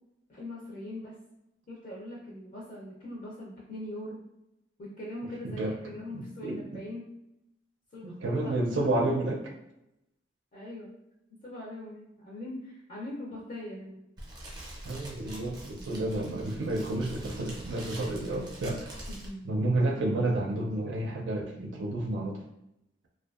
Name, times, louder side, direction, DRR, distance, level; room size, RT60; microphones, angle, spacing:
voice 1, 0.3-1.1 1.7-4.2 4.8-7.0 7.9-8.9 10.5-10.9 11.4-14.0 19.1-19.6, left 1 dB, 45° left, -5 dB, 0.5 m, -41 dB
voice 2, 5.4-5.7 6.1-6.6 8.0-9.5 14.9-18.9 19.4-22.4, right 2 dB, 85° right, 0 dB, 0.4 m, -30 dB
Fire, 14.2-19.3, right 1 dB, 25° right, 0.5 m, -44 dB
2.6 x 2.3 x 2.3 m, 0.85 s
head